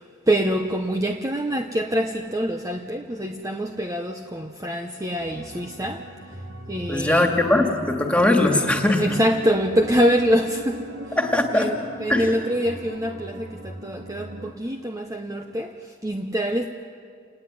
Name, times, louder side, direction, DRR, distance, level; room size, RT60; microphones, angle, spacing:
voice 1, 0.0-6.4 6.7-7.3 9.0-11.2 11.5-16.7, equal, 15° right, 5 dB, 0.9 m, -25 dB
sound 1, 5.2-14.5, equal, 70° right, 3.5 m, -39 dB
voice 2, 6.9-9.0 11.2-11.7 12.1-12.2, left 1 dB, 5° left, 3 dB, 2.4 m, -20 dB
28.0 x 20.0 x 9.3 m, 2.3 s
head